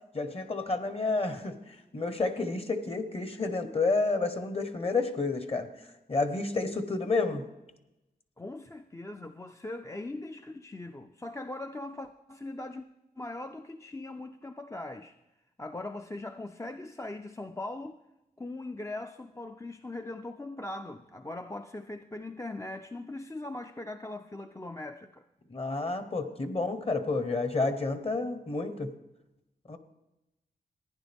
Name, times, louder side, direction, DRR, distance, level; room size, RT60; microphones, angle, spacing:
voice 1, 0.1-5.7 6.1-7.4 25.5-28.9 29.7-29.8, left 3 dB, 35° left, 1.1 m, -30 dB
voice 2, 8.4-12.8 13.2-15.1 15.6-18.0 18.4-25.2, left 2 dB, 15° left, 0.4 m, -40 dB
15.5 x 10.0 x 3.5 m
wide cardioid pair, 85°, 17 cm